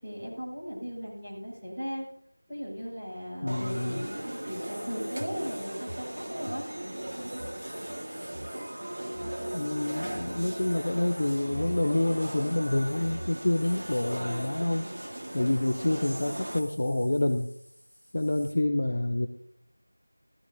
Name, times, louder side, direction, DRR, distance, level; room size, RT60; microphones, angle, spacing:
voice 1, 0.0-2.1 2.5-4.2 4.5-6.7, equal, ahead, -22 dB, 4.3 m, -37 dB
voice 2, 3.4-4.1 9.5-14.8 15.3-17.5 18.1-19.3, left 1 dB, 35° left, 6 dB, 0.6 m, -27 dB
sound 1, 3.5-16.6, right 1 dB, 40° right, 1.6 m, -38 dB
sound 2, 3.7-18.5, equal, 80° left, 5.8 m, -52 dB
sound 3, 5.2-7.6 7.9-8.0 8.3-8.6 9.1-9.6 10.0-10.5 11.5-11.9 12.6-12.7 13.0-13.6, right 1 dB, 60° right, 0.9 m, -42 dB
16.5 x 15.0 x 2.7 m, 0.72 s
figure-of-eight pair, 175°, 0 cm